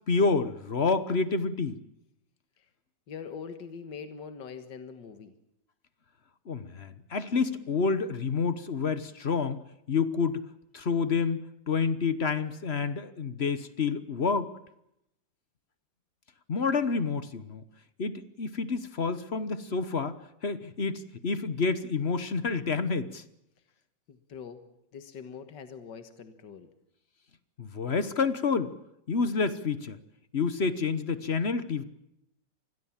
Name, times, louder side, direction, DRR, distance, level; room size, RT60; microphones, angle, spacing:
voice 1, 0.1-1.8 6.5-9.6 9.9-10.4 10.7-14.5 16.5-17.6 18.0-23.2 27.6-28.7 29.1-30.0 30.3-31.8, left 4 dB, 40° left, 13 dB, 1.2 m, -28 dB
voice 2, 3.1-5.3 24.1-24.7 24.9-26.7, left 6 dB, 70° left, 9 dB, 2.2 m, -43 dB
27.0 x 20.5 x 7.4 m, 0.82 s
omnidirectional pair, 2.0 m